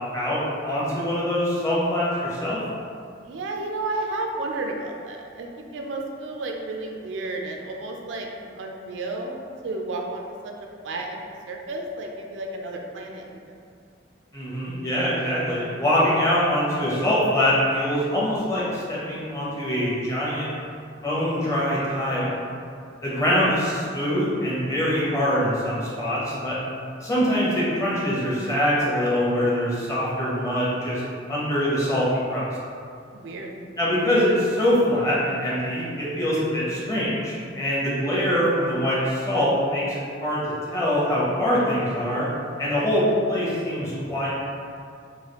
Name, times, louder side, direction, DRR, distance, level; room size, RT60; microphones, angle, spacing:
voice 1, 0.1-2.6 14.3-20.5 21.0-22.4 23.0-26.6 27.0-31.0 31.3-32.5 33.8-40.4 40.7-42.2 42.6-44.3, equal, 15° left, -8 dB, 0.6 m, -24 dB
voice 2, 3.2-10.5 10.8-13.6 23.1-23.2 33.1-33.5, right 2 dB, 75° right, 1 dB, 0.3 m, -32 dB
3.1 x 2.3 x 2.9 m, 2.3 s
head